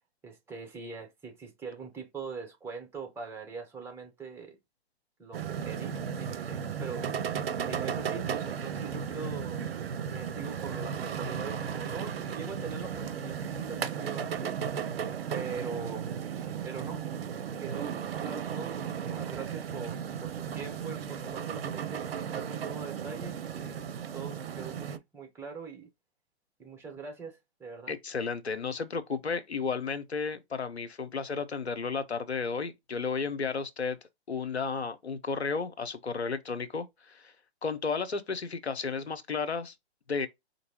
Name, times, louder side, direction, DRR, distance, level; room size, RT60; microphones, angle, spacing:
voice 1, 0.2-4.6 5.2-7.3 7.6-9.7 10.0-14.6 15.3-16.1 16.6-17.0 17.6-23.8 24.1-25.9 26.6-27.9, right 5 dB, 10° right, 0.7 m, -42 dB
sound 1, 5.3-25.0, right 7 dB, 65° right, 0.5 m, -35 dB
voice 2, 27.9-34.0 34.3-37.3 37.6-39.7 40.1-40.3, left 5 dB, 85° left, 0.6 m, -33 dB
4.4 x 2.6 x 2.8 m
figure-of-eight pair, 115°, 32 cm